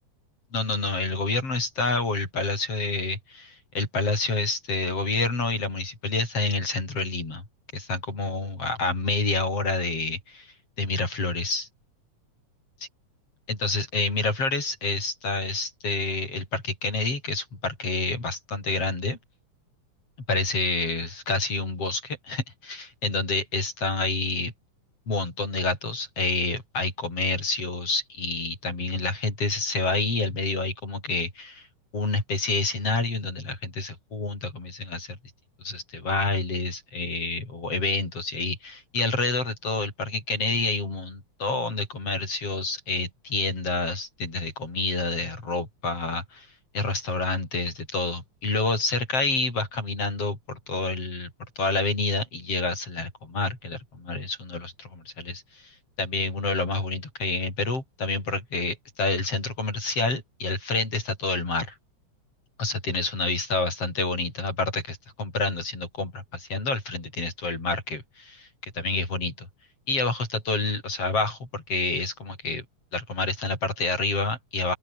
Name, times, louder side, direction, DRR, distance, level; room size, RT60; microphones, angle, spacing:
voice 1, 0.5-7.4 7.7-11.7 13.5-19.2 20.3-24.5 25.1-31.7 31.9-35.2 35.6-46.5 46.7-51.3 51.6-61.7 62.6-69.5 69.9-72.6 72.9-74.8, left 3 dB, 50° left, 7.5 m, -28 dB
open air
omnidirectional pair, 3.5 m